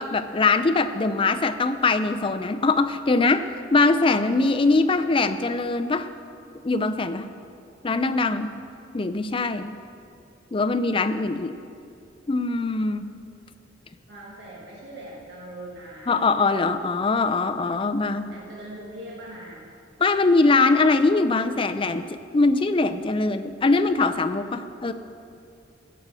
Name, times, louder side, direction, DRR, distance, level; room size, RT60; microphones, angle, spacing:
voice 1, 0.0-6.1 6.6-7.3 7.8-8.5 8.9-9.7 10.5-11.5 12.3-13.1 16.1-18.4 20.0-24.9, left 3 dB, 30° left, 9 dB, 0.4 m, -22 dB
voice 2, 14.1-16.2 18.3-19.8, right 1 dB, 65° right, -4 dB, 1.5 m, -41 dB
16.0 x 7.4 x 4.9 m, 2.5 s
head